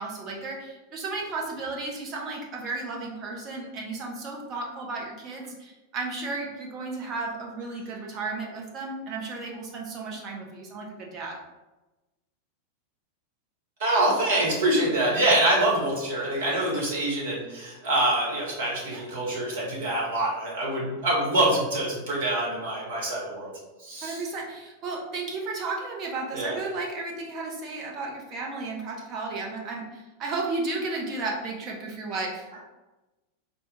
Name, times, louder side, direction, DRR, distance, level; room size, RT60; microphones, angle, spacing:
voice 1, 0.0-11.4 18.9-19.0 24.0-32.6, right 3 dB, 35° right, -1 dB, 0.8 m, -34 dB
voice 2, 13.8-23.5 23.8-24.2 26.3-26.6, right 1 dB, 60° right, -4 dB, 1.3 m, -25 dB
4.2 x 2.2 x 3.4 m, 1.1 s
figure-of-eight pair, 90°, 0 cm